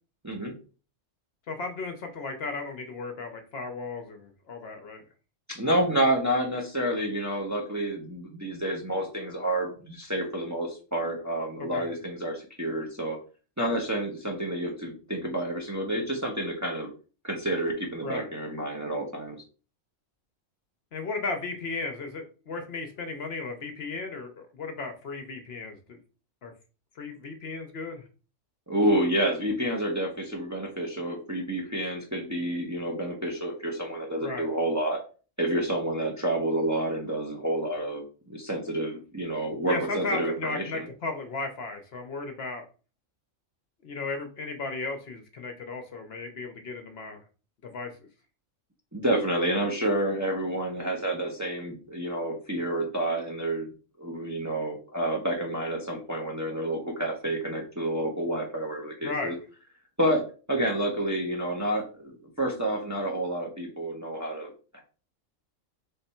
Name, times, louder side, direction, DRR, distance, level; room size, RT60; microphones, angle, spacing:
voice 1, 1.5-5.0 11.7-11.9 18.0-18.3 20.9-26.0 26.4-26.5 27.0-28.0 34.2-34.5 39.7-42.6 43.8-47.2 47.6-47.9 59.0-59.4, left 3 dB, 60° left, 5 dB, 0.8 m, -35 dB
voice 2, 5.5-13.2 13.6-16.9 17.2-19.4 28.7-35.0 35.4-40.9 48.9-53.7 54.0-59.3 60.0-60.2 60.5-64.8, right 1 dB, 15° right, 0 dB, 0.7 m, -29 dB
3.6 x 3.3 x 4.2 m, 0.37 s
omnidirectional pair, 1.3 m